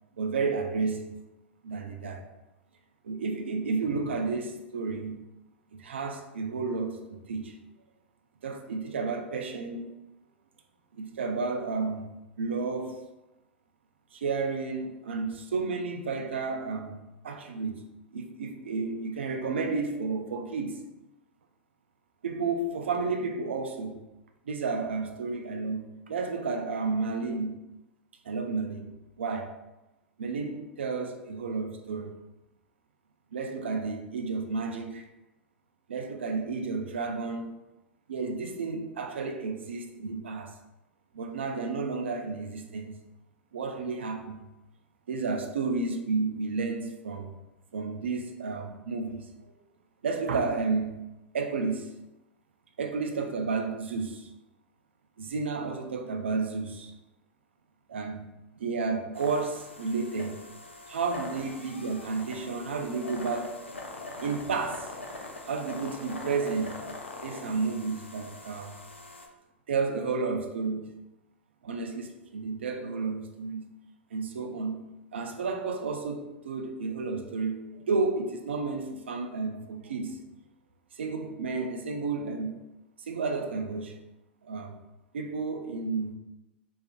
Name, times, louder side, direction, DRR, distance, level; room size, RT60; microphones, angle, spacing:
voice 1, 0.2-1.1 1.6-2.3 3.0-5.2 5.7-7.6 8.4-9.9 10.9-12.0 12.4-13.1 14.1-17.8 18.1-20.8 22.2-24.0 24.5-27.6 28.2-28.9 29.2-29.5 30.2-32.1 33.3-35.0 35.9-37.5 38.1-40.5 41.1-43.0 43.5-44.4 45.1-47.3 47.7-49.3 50.0-51.0 51.3-51.9 52.8-54.3 55.2-56.9 57.9-58.3 58.5-60.4 60.9-63.6 64.2-64.9 65.5-66.7 67.2-68.8 69.7-70.9 71.6-73.7 74.1-74.8 75.1-80.2 81.0-82.5 83.1-84.0 84.4-84.8 85.1-86.1, right 4 dB, 75° right, 0.3 m, -31 dB
sound 1, 59.1-69.3, left 2 dB, 90° left, 0.4 m, -43 dB
2.4 x 2.4 x 2.3 m
figure-of-eight pair, 95°, 6 cm